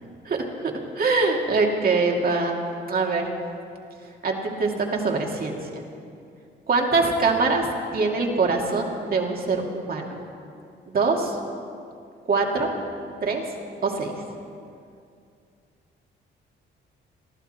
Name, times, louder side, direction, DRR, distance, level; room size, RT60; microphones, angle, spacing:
voice 1, 0.2-3.3 4.2-5.8 6.7-10.2 10.9-11.4 12.3-12.7 13.2-13.4 13.8-14.1, right 3 dB, 50° right, 0 dB, 2.6 m, -24 dB
23.0 x 14.0 x 4.4 m, 2.4 s
cardioid pair, 90°, 20 cm